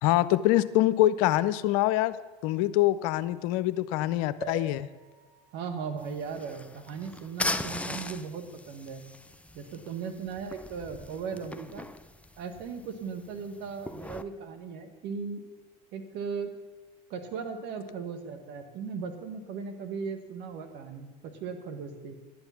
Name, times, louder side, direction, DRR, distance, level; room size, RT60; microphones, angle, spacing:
voice 1, 0.0-2.2 2.4-4.9, left 15 dB, 65° left, 15 dB, 0.6 m, -24 dB
sound 1, 4.4-8.1 8.7-8.8 9.0-9.1, right 4 dB, 45° right, 4.7 m, -46 dB
voice 2, 5.5-9.0 9.5-11.9 12.4-15.4 15.9-16.5 17.1-22.2, right 5 dB, 60° right, 6 dB, 1.6 m, -37 dB
sound 2, 6.0-14.2, left 2 dB, 5° left, 0.5 m, -39 dB
11.0 x 8.8 x 5.8 m, 1.2 s
hypercardioid pair, 80°, 20 cm